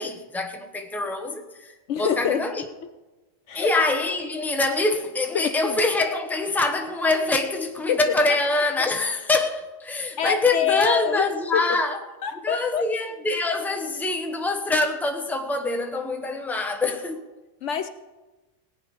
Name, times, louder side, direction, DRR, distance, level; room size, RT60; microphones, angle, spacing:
voice 1, 0.0-2.6 3.5-12.0 12.4-17.2, left 2 dB, ahead, 0.9 m, -25 dB
voice 2, 1.9-2.7 3.5-3.7 5.3-5.8 7.9-8.0 8.3-8.4 10.2-11.2 11.5-11.8 12.2-12.9 17.6-17.9, left 8 dB, 65° left, 0.9 m, -26 dB
17.5 x 9.2 x 5.4 m
omnidirectional pair, 1.4 m